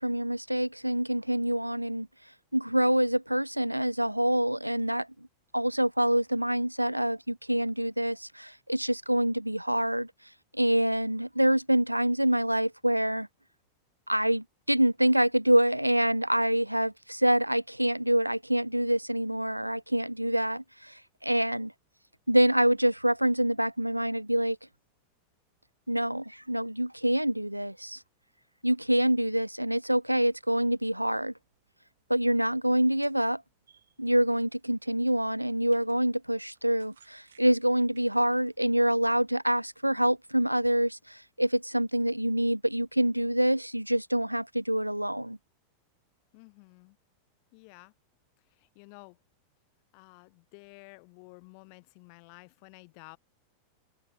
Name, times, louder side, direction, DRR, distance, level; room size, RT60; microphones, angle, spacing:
voice 1, 0.0-2.1 2.5-5.1 5.5-10.1 10.5-13.3 14.1-21.7 22.3-24.6 25.9-28.0 28.6-31.3 32.1-33.4 34.0-45.4, right 1 dB, 90° right, 0.4 m, -26 dB
sound 1, 30.4-40.7, right 7 dB, 70° right, 4.4 m, -66 dB
voice 2, 46.3-47.0 47.5-47.9 48.5-49.2 49.9-53.2, left 40 dB or more, 45° left, 4.4 m, -52 dB
figure-of-eight pair, 90°, 0 cm